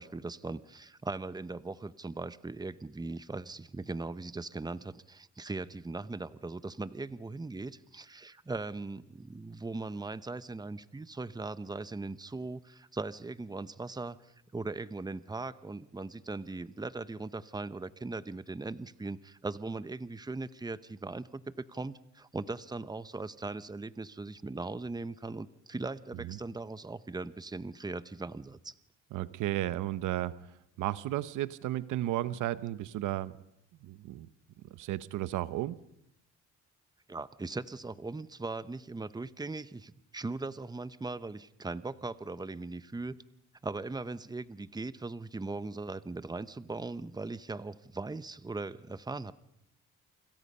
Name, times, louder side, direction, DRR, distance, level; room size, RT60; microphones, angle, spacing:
voice 1, 0.0-21.4 21.7-28.7 37.1-43.2 43.6-49.3, right 3 dB, 15° right, 14 dB, 0.9 m, -39 dB
voice 2, 29.1-33.4 33.8-34.3 34.7-35.8, right 14 dB, 85° right, 15 dB, 0.9 m, -34 dB
28.0 x 26.0 x 5.6 m, 0.80 s
cardioid pair, 90°, 30 cm